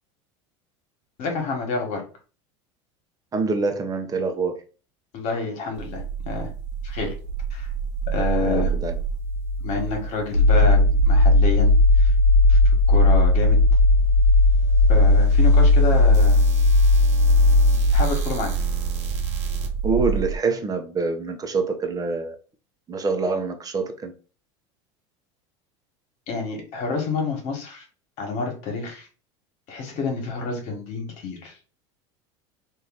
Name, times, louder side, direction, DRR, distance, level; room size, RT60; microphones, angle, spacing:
voice 1, 1.2-2.0 5.1-6.5 6.8-7.1 7.5-7.7 8.1-8.7 9.6-12.1 12.5-12.6 12.9-13.6 14.9-16.4 17.9-18.5 26.3-27.8 28.2-29.1 29.7-31.5, left 4 dB, 55° left, 1.6 m, -28 dB
voice 2, 3.3-4.6 8.4-9.0 10.5-10.6 19.8-22.4 22.9-24.1, right 4 dB, 25° right, 0.8 m, -25 dB
sound 1, 5.7-20.4, left 1 dB, 85° right, 0.9 m, -18 dB
3.1 x 2.8 x 3.9 m
hypercardioid pair, 95°, 15 cm